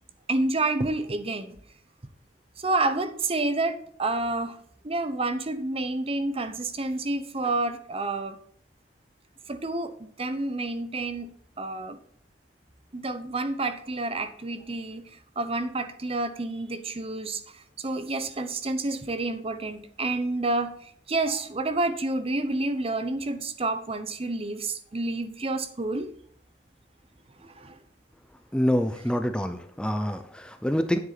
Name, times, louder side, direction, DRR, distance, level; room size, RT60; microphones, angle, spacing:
voice 1, 0.3-1.6 2.6-4.6 4.8-8.4 9.5-11.3 11.6-12.0 12.9-26.1 27.4-27.8, right 2 dB, 30° right, 10 dB, 0.8 m, -29 dB
voice 2, 28.5-31.0, equal, 5° left, 8 dB, 0.6 m, -26 dB
9.6 x 8.0 x 4.1 m, 0.63 s
head